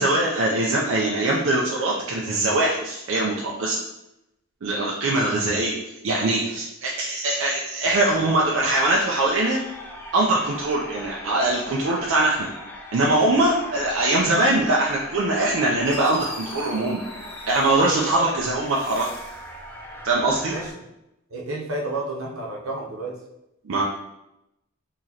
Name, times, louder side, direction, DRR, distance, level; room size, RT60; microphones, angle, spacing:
voice 1, 0.0-3.8 4.6-5.7 6.0-9.6 10.1-12.5 12.9-17.0 17.5-19.1 20.0-20.6 23.6-23.8, right 2 dB, 65° right, -3 dB, 0.5 m, -22 dB
sound 1, 7.8-20.7, left 1 dB, 10° left, 0.5 m, -40 dB
Fireworks, 15.4-15.5 15.8-18.3 18.6-19.5, left 1 dB, 25° left, 1.1 m, -41 dB
voice 2, 21.3-23.1, right 2 dB, 85° right, -2 dB, 0.9 m, -30 dB
4.8 x 2.9 x 2.8 m, 0.88 s
head